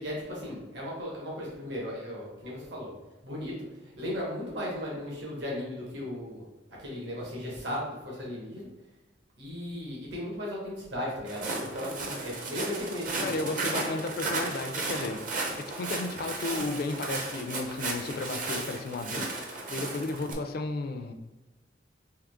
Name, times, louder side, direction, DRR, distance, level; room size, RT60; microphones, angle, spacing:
voice 1, 0.0-2.9 3.2-3.5 3.8-6.4 6.7-8.7 9.4-13.3, left 1 dB, 70° right, -4 dB, 1.3 m, -36 dB
Walk footsteps, 11.3-20.3, right 3 dB, 45° right, 0.7 m, -34 dB
voice 2, 13.2-15.2 15.6-19.3 19.7-21.1, left 3 dB, 55° left, 6 dB, 0.4 m, -33 dB
3.7 x 3.1 x 3.5 m, 1.1 s
head